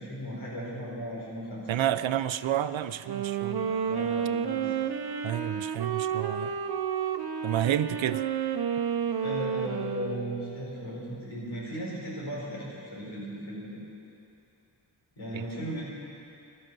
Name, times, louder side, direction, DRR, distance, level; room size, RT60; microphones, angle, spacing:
voice 1, 0.0-1.9 3.8-4.7 9.2-13.8 15.2-15.8, equal, 90° left, -5 dB, 4.6 m, -36 dB
voice 2, 1.7-3.7 5.2-6.5 7.4-8.2 15.3-15.4, right 11 dB, 85° right, 14 dB, 0.6 m, -29 dB
Wind instrument woodwind instrument, 3.0-10.7, right 8 dB, 55° right, 0.8 m, -31 dB
15.0 x 12.5 x 6.1 m, 2.7 s
wide cardioid pair, 90°, 45 cm